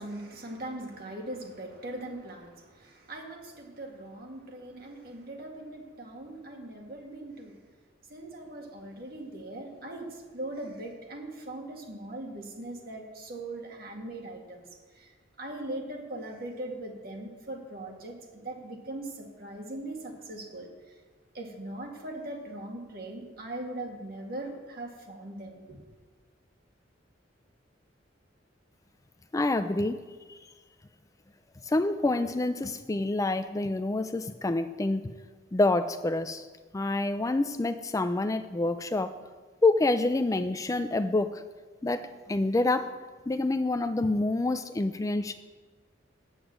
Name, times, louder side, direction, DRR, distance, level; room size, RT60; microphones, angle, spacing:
voice 1, 0.0-7.6 8.1-21.0 21.3-25.8, right 1 dB, 55° right, 1 dB, 2.0 m, -40 dB
voice 2, 29.3-30.0 30.3-30.4 31.7-35.0 35.5-36.5 36.7-39.1 39.6-41.4 41.8-42.9 43.3-45.3, left 2 dB, 20° left, 10 dB, 0.4 m, -27 dB
9.1 x 7.9 x 7.5 m, 1.4 s
head